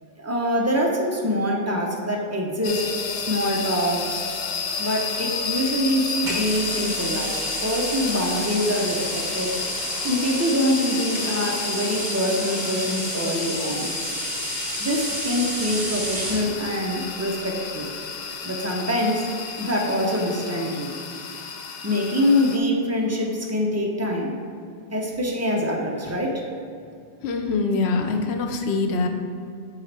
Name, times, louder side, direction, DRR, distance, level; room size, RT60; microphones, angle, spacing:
voice 1, 0.0-2.8 3.1-4.2 4.8-7.3 7.6-9.5 10.0-13.9 14.8-17.9 18.4-19.2 19.6-20.9 21.8-24.4 24.9-26.4, equal, 20° right, -1 dB, 0.6 m, -24 dB
sound 1, 2.6-22.6, left 5 dB, 55° left, 0.5 m, -31 dB
sound 2, 6.2-16.5, right 1 dB, 50° right, 1.4 m, -31 dB
voice 2, 27.2-29.1, left 3 dB, 80° left, 5 dB, 0.9 m, -24 dB
7.3 x 3.9 x 3.3 m, 2.4 s
omnidirectional pair, 1.1 m